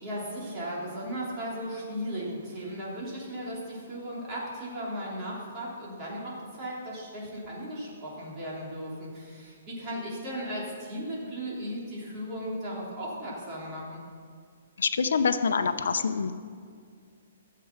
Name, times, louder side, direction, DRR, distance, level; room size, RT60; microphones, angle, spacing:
voice 1, 0.0-14.0, equal, 20° right, -6 dB, 3.2 m, -36 dB
voice 2, 14.8-16.3, left 5 dB, 80° left, 10 dB, 0.7 m, -26 dB
14.0 x 7.6 x 6.0 m, 2.1 s
hypercardioid pair, 170°, 0 cm